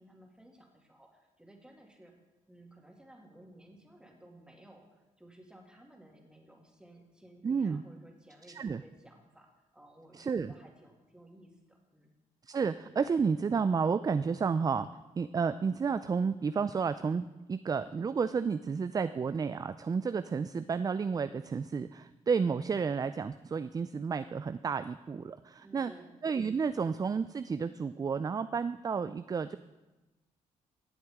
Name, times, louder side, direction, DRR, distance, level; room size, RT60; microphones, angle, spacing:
voice 1, 0.0-2.1 2.5-12.1 25.6-26.2, right 1 dB, 5° right, 0 dB, 2.4 m, -56 dB
voice 2, 7.4-7.8 8.5-8.8 10.1-10.5 12.5-14.9 15.2-25.9 26.2-29.6, right 5 dB, 25° right, 12 dB, 0.3 m, -31 dB
15.5 x 7.8 x 3.6 m, 1.1 s
cardioid pair, 75°, 14 cm